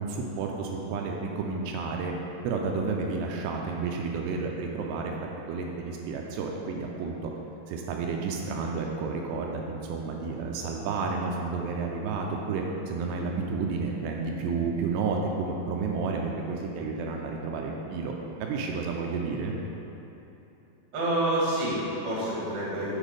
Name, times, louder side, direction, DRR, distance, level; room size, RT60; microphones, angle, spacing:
voice 1, 0.0-2.1 2.4-7.2 7.7-18.1 18.4-19.5, right 4 dB, 85° right, 0 dB, 2.6 m, -31 dB
voice 2, 20.9-23.0, right 1 dB, 50° right, -7 dB, 1.3 m, -28 dB
8.2 x 4.3 x 5.1 m, 3.0 s
omnidirectional pair, 5.0 m